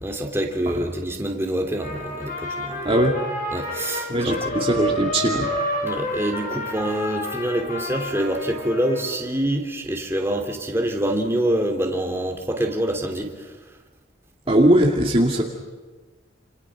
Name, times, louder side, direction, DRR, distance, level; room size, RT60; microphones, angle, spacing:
voice 1, 0.0-2.9 3.5-4.4 5.8-13.5, right 1 dB, 15° right, 2 dB, 2.9 m, -26 dB
Trumpet, 1.8-9.1, equal, 45° left, 5.8 m, -29 dB
voice 2, 4.1-5.5 14.5-15.4, right 1 dB, 30° right, 0 dB, 2.3 m, -19 dB
29.0 x 28.0 x 6.1 m, 1.3 s
head